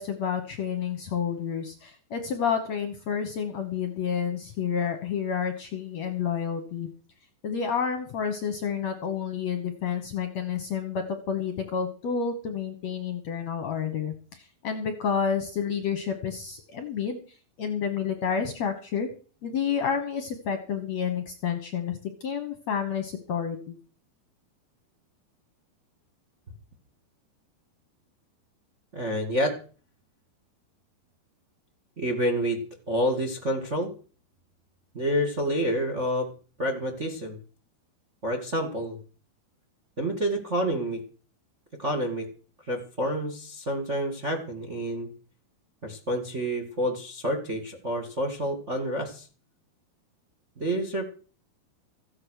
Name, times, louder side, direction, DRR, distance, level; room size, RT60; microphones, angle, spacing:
voice 1, 0.0-6.9 7.4-17.2 17.6-19.1 19.4-23.8, left 7 dB, 60° left, 7 dB, 2.0 m, -30 dB
voice 2, 28.9-29.6 32.0-33.9 34.9-36.3 36.6-37.4 38.2-39.0 40.0-41.0 41.8-42.3 42.7-45.1 45.8-49.3 50.6-51.1, equal, 25° right, 5 dB, 1.5 m, -28 dB
15.0 x 8.7 x 6.4 m, 0.39 s
omnidirectional pair, 4.5 m